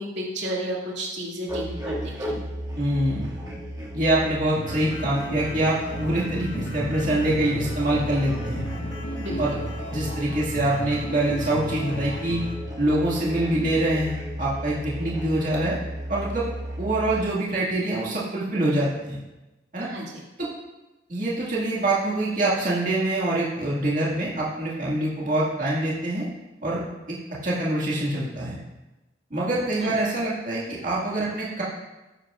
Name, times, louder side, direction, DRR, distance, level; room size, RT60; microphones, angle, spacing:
voice 1, 0.0-2.4 9.2-9.6 15.0-15.1 19.8-20.2 29.8-29.9, right 1 dB, 70° right, -3 dB, 2.4 m, -33 dB
sound 1, 1.5-17.2, equal, 20° right, 2.2 m, -34 dB
voice 2, 2.8-3.3 3.9-8.6 9.4-9.5 9.9-12.4 12.8-15.8 16.1-16.5 16.8-19.2 19.7-19.9 20.4-20.5 21.1-26.3 26.6-26.8 27.4-28.6 29.3-31.6, right 1 dB, 40° right, -6 dB, 2.1 m, -25 dB
sound 2, 4.5-12.5, equal, 80° left, 1.7 m, -34 dB
14.0 x 10.5 x 2.5 m, 1.1 s
head